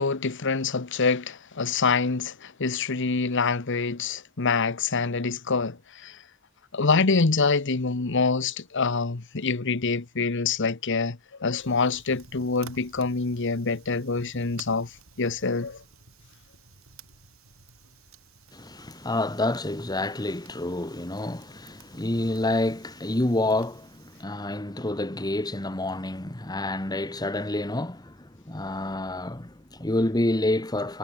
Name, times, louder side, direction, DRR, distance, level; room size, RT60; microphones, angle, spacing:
voice 1, 0.0-5.8 6.0-6.2 6.7-14.9 15.2-15.8, left 4 dB, 60° left, 1.1 m, -25 dB
Fire, 11.6-24.2, right 5 dB, 75° right, 4.4 m, -53 dB
voice 2, 18.5-31.0, left 1 dB, 20° left, 1.5 m, -28 dB
head